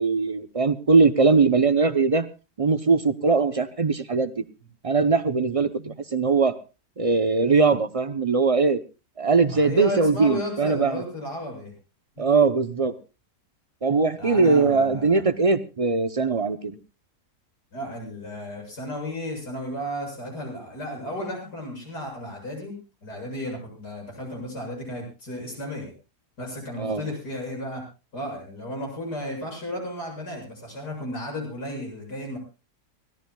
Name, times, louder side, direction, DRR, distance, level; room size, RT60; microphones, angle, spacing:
voice 1, 0.0-2.3 2.6-4.4 4.8-6.5 7.0-8.8 9.2-11.0 12.2-12.9 13.8-16.8 26.8-27.0, right 4 dB, 45° right, 12 dB, 0.4 m, -21 dB
voice 2, 9.5-11.7 12.2-12.3 14.2-15.2 17.7-22.8 23.0-25.9 26.4-27.8 28.1-32.4, left 1 dB, 75° left, 1 dB, 8.2 m, -34 dB
24.0 x 17.0 x 2.3 m, 0.32 s
omnidirectional pair, 1.7 m